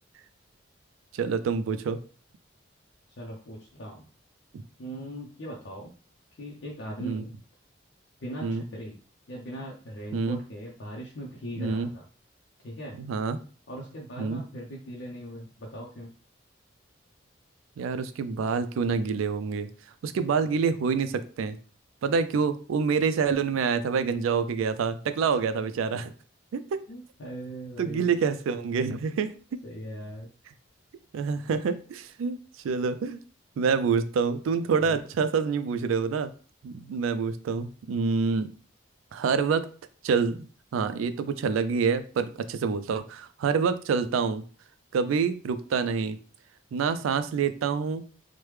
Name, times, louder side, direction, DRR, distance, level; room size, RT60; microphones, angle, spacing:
voice 1, 1.1-2.0 7.0-7.2 8.4-8.6 10.1-10.4 11.6-11.9 13.0-13.4 14.2-14.4 17.8-19.7 20.0-21.6 22.0-26.1 26.5-26.8 27.8-29.3 31.1-32.4 32.6-33.2 33.6-36.3 36.6-38.5 39.1-39.7 40.0-40.4 40.7-44.4 44.9-46.2 46.7-48.1, right 5 dB, 85° right, 11 dB, 0.3 m, -27 dB
voice 2, 3.2-4.1 4.8-5.9 6.4-7.3 8.2-9.0 9.3-12.0 12.6-13.0 13.7-16.1 26.9-28.2 29.6-30.3 34.9-35.0, right 1 dB, 60° left, -2 dB, 0.5 m, -39 dB
3.2 x 2.1 x 3.1 m, 0.39 s
head